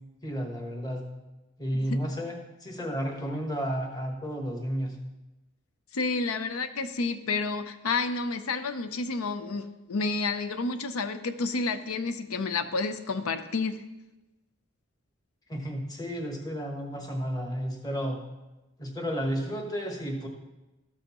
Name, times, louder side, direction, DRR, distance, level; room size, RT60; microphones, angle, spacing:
voice 1, 0.2-1.0 1.6-4.9 15.5-18.2 18.8-20.3, equal, 20° left, 2 dB, 1.2 m, -32 dB
voice 2, 5.9-13.8, left 3 dB, 85° left, 10 dB, 0.7 m, -30 dB
12.5 x 7.7 x 3.0 m, 1.0 s
head